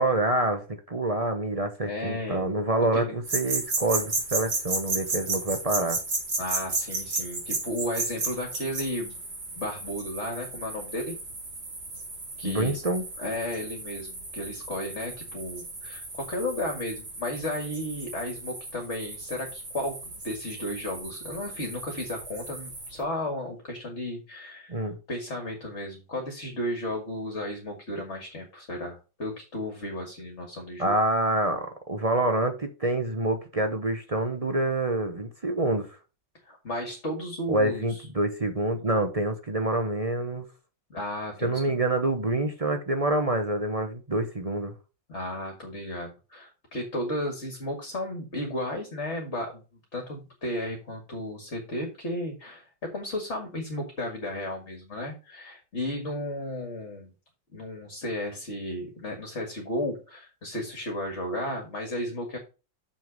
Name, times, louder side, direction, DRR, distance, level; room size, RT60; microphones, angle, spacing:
voice 1, 0.0-6.0 12.4-13.0 24.7-25.0 30.8-35.9 37.5-40.5 41.4-44.7, right 2 dB, 35° right, 0.6 m, -27 dB
voice 2, 1.8-2.5 2.9-3.0 6.4-9.2 9.6-11.1 12.4-12.8 13.2-24.8 25.1-31.0 36.4-38.1 40.9-41.7 45.1-49.6 49.9-57.1 57.5-62.4, left 1 dB, 40° left, 2.1 m, -34 dB
sound 1, 3.2-23.0, right 3 dB, 70° right, 3.9 m, -34 dB
6.9 x 6.4 x 5.1 m
omnidirectional pair, 2.0 m